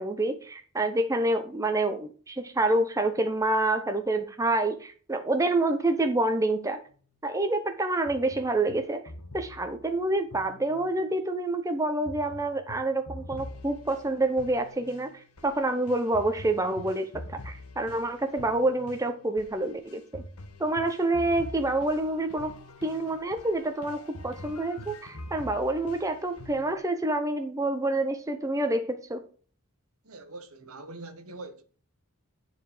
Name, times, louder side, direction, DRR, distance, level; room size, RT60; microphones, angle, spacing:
voice 1, 0.0-6.8 7.2-9.0 9.3-15.1 15.4-20.2 20.6-22.5 22.8-29.2, right 2 dB, 15° right, 0.7 m, -27 dB
sound 1, 8.1-11.2 12.1-26.8, left 1 dB, 80° left, 1.4 m, -45 dB
voice 2, 30.0-31.6, right 2 dB, 70° right, 1.2 m, -43 dB
9.8 x 4.7 x 4.9 m
head